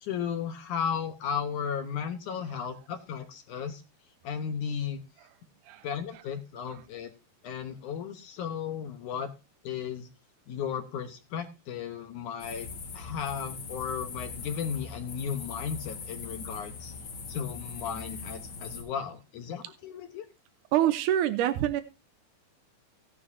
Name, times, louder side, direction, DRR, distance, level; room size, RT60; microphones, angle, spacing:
voice 1, 0.0-3.8 4.2-5.0 5.8-7.1 7.4-9.3 9.6-10.1 10.5-12.7 12.9-16.9 17.3-20.3, left 7 dB, 65° left, 2.2 m, -35 dB
sound 1, 12.4-18.8, left 4 dB, 45° left, 1.8 m, -41 dB
voice 2, 20.7-21.8, right 12 dB, 85° right, 1.8 m, -25 dB
16.5 x 9.8 x 2.7 m
omnidirectional pair, 4.5 m